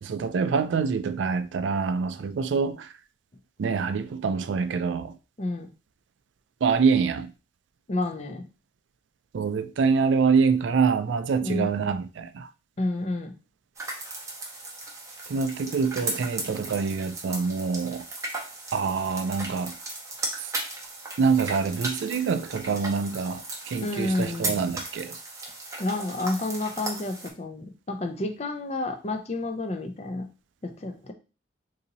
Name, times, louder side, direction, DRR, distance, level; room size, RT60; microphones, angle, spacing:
voice 1, 0.0-2.9 3.6-5.2 6.6-7.3 9.3-12.5 15.3-18.1 18.7-19.7 21.2-25.2, right 5 dB, 90° right, 0.4 m, -25 dB
voice 2, 5.4-5.7 7.9-8.4 11.4-11.7 12.8-13.3 23.8-24.6 25.8-30.3 30.6-31.1, left 2 dB, 35° left, 0.5 m, -30 dB
sound 1, 13.8-27.3, right 2 dB, 15° right, 0.6 m, -36 dB
2.8 x 2.7 x 3.9 m
head